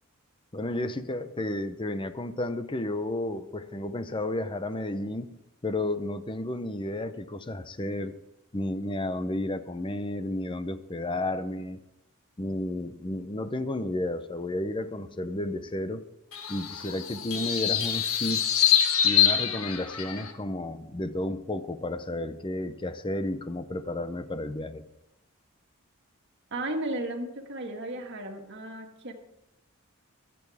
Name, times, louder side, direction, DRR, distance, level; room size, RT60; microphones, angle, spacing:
voice 1, 0.5-5.3 5.6-8.1 8.5-11.8 12.4-16.0 16.5-18.6 19.0-24.8, left 1 dB, 25° left, 11 dB, 0.7 m, -32 dB
sound 1, 16.3-20.3, left 9 dB, 85° left, 1.5 m, -25 dB
voice 2, 26.5-29.1, right 1 dB, 55° right, 3 dB, 1.7 m, -34 dB
23.0 x 8.5 x 3.5 m, 0.89 s
head